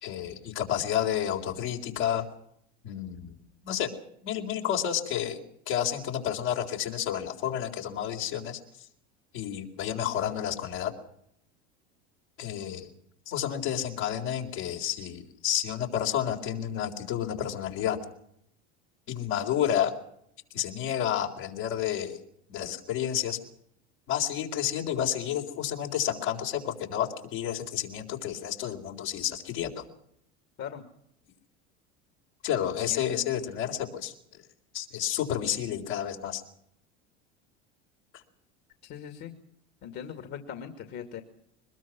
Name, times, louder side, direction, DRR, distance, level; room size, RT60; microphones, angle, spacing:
voice 1, 0.0-2.2 2.8-3.3 3.6-3.9 4.2-5.4 5.7-8.6 9.3-10.9 12.4-12.9 13.3-18.0 19.1-19.9 20.5-22.2 22.5-23.4 24.1-29.8 32.4-34.1 34.7-36.4, left 10 dB, 70° left, 1 dB, 4.2 m, -30 dB
voice 2, 32.6-33.2 38.9-39.3 39.8-41.2, left 8 dB, 50° left, 6 dB, 2.6 m, -40 dB
22.5 x 21.5 x 6.2 m, 0.72 s
hypercardioid pair, 85°, 34 cm